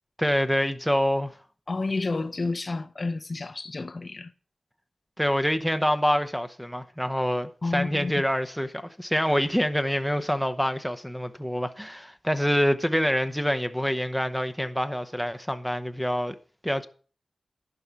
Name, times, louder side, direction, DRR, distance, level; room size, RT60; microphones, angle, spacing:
voice 1, 0.2-1.3 5.2-16.3 16.6-16.9, equal, ahead, 0.9 m, -26 dB
voice 2, 1.7-4.3 7.6-8.2, left 3 dB, 50° left, 0.7 m, -30 dB
11.5 x 4.9 x 6.9 m
cardioid pair, 55°, 0 cm